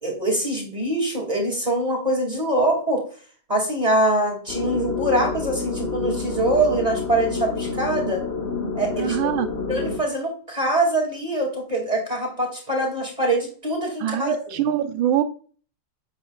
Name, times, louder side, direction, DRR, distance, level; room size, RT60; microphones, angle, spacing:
voice 1, 0.0-3.0 3.5-8.2 8.7-9.2 9.7-14.6, right 1 dB, 20° right, 2.3 m, -23 dB
sound 1, 4.5-10.0, left 4 dB, 35° left, 1.2 m, -28 dB
voice 2, 9.0-9.6 14.0-15.2, right 10 dB, 75° right, 1.4 m, -24 dB
8.4 x 7.4 x 2.4 m
omnidirectional pair, 2.4 m